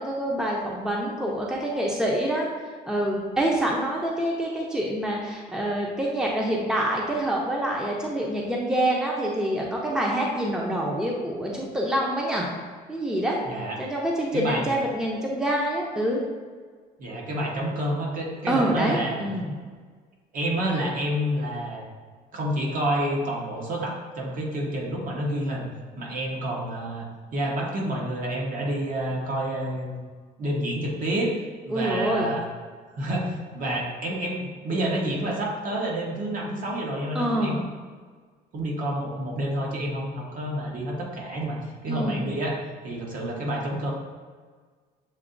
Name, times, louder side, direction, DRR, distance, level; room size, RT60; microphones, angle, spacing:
voice 1, 0.0-2.5 2.8-12.5 12.9-13.4 13.8-16.2 18.5-19.5 31.7-32.3 37.1-37.6 41.9-42.3, right 1 dB, 5° right, -2 dB, 0.7 m, -26 dB
voice 2, 13.4-13.8 14.3-14.6 17.0-19.2 20.3-21.9 22.3-25.7 26.0-29.9 30.4-32.4 32.9-37.5 38.5-43.9, right 1 dB, 55° right, -2 dB, 1.1 m, -29 dB
7.1 x 2.7 x 2.6 m, 1.5 s
cardioid pair, 110°, 17 cm